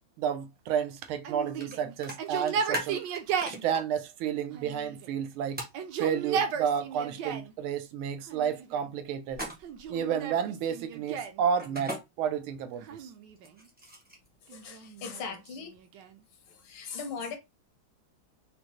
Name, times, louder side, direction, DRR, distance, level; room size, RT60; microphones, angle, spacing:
voice 1, 0.2-3.0 3.4-5.6 6.0-9.5 9.9-13.1, right 8 dB, 90° right, 1.5 m, -31 dB
Yell, 1.2-3.6 4.5-5.3 5.6-7.5 8.3-8.9 9.6-11.4 12.8-13.7 14.5-16.2, right 7 dB, 70° right, 1.2 m, -35 dB
sound 1, 1.6-1.7 2.0-3.8 5.6-5.8 9.3-9.9 11.6-12.0 13.4-14.3, right 1 dB, 15° right, 0.4 m, -37 dB
voice 2, 14.5-15.7 16.5-17.4, left 5 dB, 75° left, 1.7 m, -39 dB
5.2 x 2.1 x 3.0 m
omnidirectional pair, 2.2 m